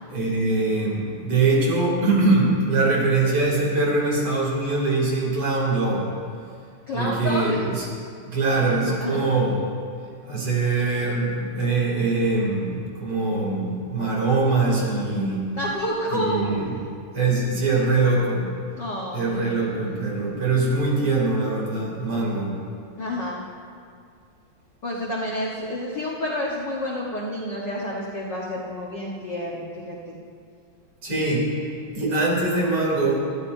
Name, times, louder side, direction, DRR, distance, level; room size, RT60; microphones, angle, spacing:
voice 1, 0.1-6.0 6.9-7.9 8.3-9.7 10.2-15.4 16.1-16.7 17.1-18.5 19.1-22.5 31.0-31.5 31.9-33.2, right 3 dB, 40° right, -4 dB, 3.6 m, -22 dB
voice 2, 6.9-7.7 9.0-9.2 15.6-16.6 18.8-20.0 23.0-23.4 24.8-30.2, left 1 dB, 65° left, -4 dB, 1.1 m, -29 dB
20.5 x 15.0 x 2.7 m, 2.3 s
omnidirectional pair, 3.9 m